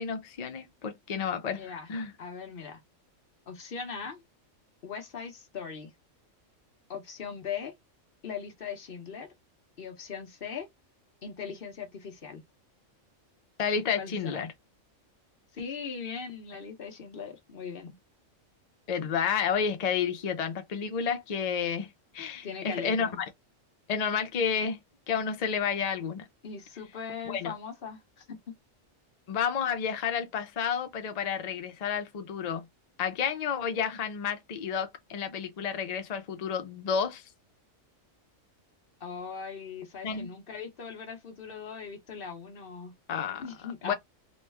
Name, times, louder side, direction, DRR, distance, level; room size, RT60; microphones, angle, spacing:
voice 1, 0.0-1.6 1.9-2.1 13.6-14.5 18.9-23.3 23.9-24.8 25.1-26.3 27.3-27.5 29.3-32.6 33.0-37.2 40.0-40.3 43.1-43.4 43.8-43.9, left 7 dB, 70° left, 0.3 m, -30 dB
voice 2, 1.5-1.9 2.2-2.8 3.5-4.2 4.8-5.9 6.9-7.7 8.2-9.3 9.8-10.7 11.2-12.4 14.0-14.5 15.5-18.0 22.4-23.2 26.4-28.4 39.0-42.9 43.4-43.9, left 6 dB, 50° left, 1.0 m, -39 dB
3.1 x 2.0 x 3.3 m
omnidirectional pair, 1.4 m